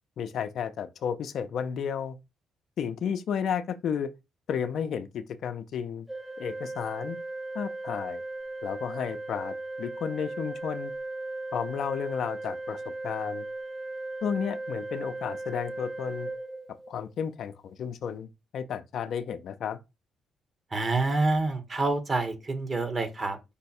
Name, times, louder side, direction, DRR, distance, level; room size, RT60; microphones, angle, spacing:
voice 1, 0.2-2.2 2.8-4.1 4.5-6.1 6.4-7.2 7.5-8.2 8.6-10.9 11.5-13.5 14.2-16.3 16.9-19.8, left 7 dB, 65° left, 0.5 m, -32 dB
Organ, 6.1-17.1, right 2 dB, ahead, 0.5 m, -37 dB
voice 2, 20.7-23.5, right 3 dB, 35° right, 1.2 m, -27 dB
5.4 x 2.2 x 4.2 m
cardioid pair, 90°, 0 cm